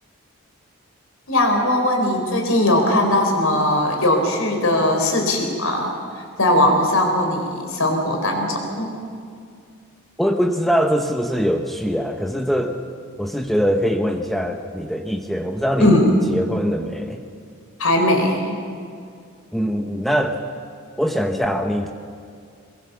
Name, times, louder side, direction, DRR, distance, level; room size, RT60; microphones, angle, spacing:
voice 1, 1.3-8.9 15.8-16.2 17.8-18.6, left 1 dB, 70° left, 3 dB, 4.7 m, -19 dB
voice 2, 10.2-12.8 13.2-16.0 16.3-17.2 19.5-20.4 21.0-21.9, equal, ahead, 4 dB, 1.0 m, -22 dB
22.5 x 22.0 x 7.1 m, 2.3 s
head